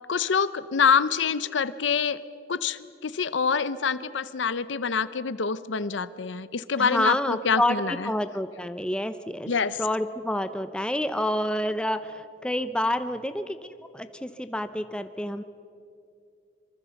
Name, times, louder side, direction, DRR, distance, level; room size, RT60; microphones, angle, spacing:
voice 1, 0.1-2.2 2.5-8.1 9.5-9.8, left 6 dB, 80° left, 15 dB, 0.6 m, -26 dB
voice 2, 6.8-9.5 9.8-15.4, left 1 dB, 5° left, 10 dB, 0.6 m, -28 dB
24.5 x 23.5 x 7.1 m, 2.5 s
head